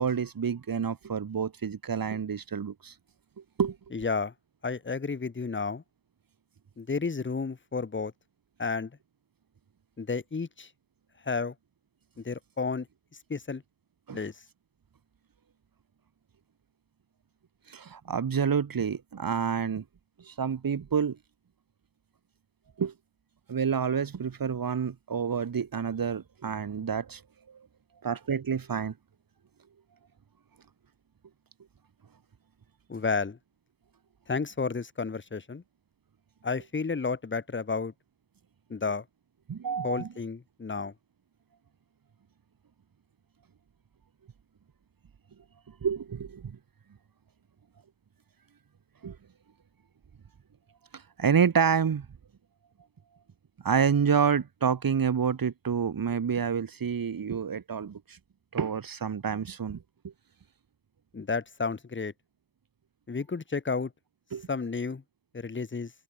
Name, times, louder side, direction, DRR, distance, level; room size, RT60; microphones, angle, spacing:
voice 1, 0.0-2.9 3.6-3.8 14.1-14.2 17.7-19.8 20.2-21.2 22.8-22.9 23.5-27.2 27.5-27.7 28.0-28.9 39.5-40.1 45.8-46.6 49.0-49.2 50.9-52.1 53.6-58.2 58.5-60.1 64.3-64.5, right 7 dB, 50° right, 3.6 m, -28 dB
voice 2, 3.9-4.3 4.6-5.8 6.8-8.1 8.6-8.9 10.0-10.7 11.2-11.5 12.2-12.9 13.3-13.6 14.1-14.4 32.9-33.4 34.3-35.6 36.4-37.9 38.7-39.0 39.8-40.9 61.1-62.1 63.1-63.9 64.5-65.0 65.3-65.9, left 4 dB, 25° left, 1.9 m, -31 dB
wide cardioid pair, 140°, 44 cm